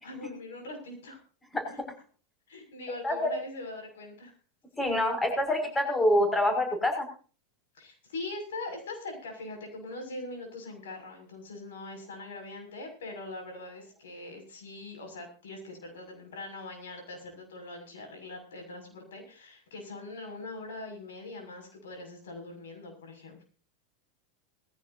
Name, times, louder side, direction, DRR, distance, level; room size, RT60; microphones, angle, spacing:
voice 1, 0.0-1.2 2.5-4.3 7.7-23.4, left 2 dB, 70° left, 4 dB, 6.4 m, -42 dB
voice 2, 4.8-7.1, left 1 dB, 15° left, 5 dB, 5.9 m, -26 dB
20.0 x 15.5 x 2.8 m, 0.38 s
hypercardioid pair, 90°, 0 cm